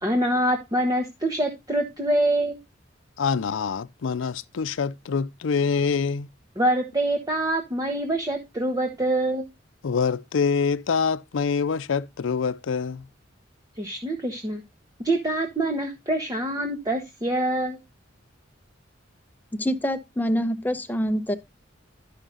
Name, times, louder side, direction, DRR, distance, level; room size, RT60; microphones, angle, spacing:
voice 1, 0.0-2.6 6.6-9.5 13.8-14.6 15.0-17.8, right 1 dB, 20° right, 1.0 m, -25 dB
voice 2, 3.2-6.3 9.8-13.1, left 5 dB, 80° left, 0.5 m, -25 dB
voice 3, 19.6-21.3, equal, 10° left, 0.9 m, -25 dB
11.5 x 5.7 x 3.8 m
head